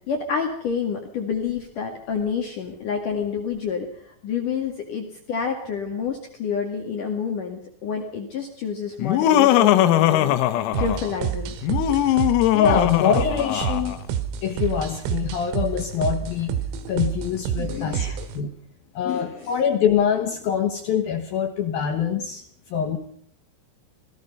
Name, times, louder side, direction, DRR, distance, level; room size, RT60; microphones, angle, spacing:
voice 1, 0.1-11.6 17.6-18.2 19.1-19.5, left 6 dB, 50° left, 2 dB, 2.8 m, -29 dB
Laughter, 9.0-11.2 11.6-14.0, left 13 dB, 90° left, 3.8 m, -20 dB
sound 1, 10.7-18.4, right 9 dB, 85° right, 4.2 m, -29 dB
voice 2, 12.5-14.0 14.4-16.5 16.9-18.1 18.3-18.5 18.9-22.4 22.7-23.0, left 8 dB, 70° left, 5 dB, 2.4 m, -24 dB
27.0 x 19.5 x 5.5 m, 0.62 s
omnidirectional pair, 6.0 m